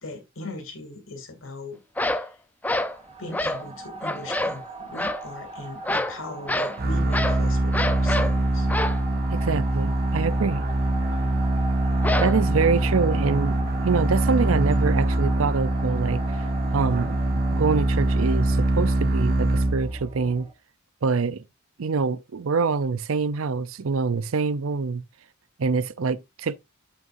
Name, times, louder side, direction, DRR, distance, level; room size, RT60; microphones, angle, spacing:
voice 1, 0.0-2.4 3.2-8.7, left 2 dB, 70° left, 2.6 m, -39 dB
sound 1, 2.0-2.3 2.6-3.0 3.3-3.7 4.0-4.6 4.9-5.2 5.8-6.2 6.5-6.8 7.1-7.4 7.7-8.4 8.7-9.0 12.0-12.7, left 1 dB, 10° left, 0.6 m, -26 dB
sound 2, 2.8-20.5, right 1 dB, 30° right, 2.4 m, -39 dB
sound 3, 6.8-20.2, right 1 dB, 50° right, 0.8 m, -23 dB
voice 2, 9.3-10.7 12.2-16.4 16.7-20.5 21.0-21.4 21.8-25.0 25.6-26.6, right 5 dB, 85° right, 0.6 m, -25 dB
8.2 x 7.7 x 2.6 m
head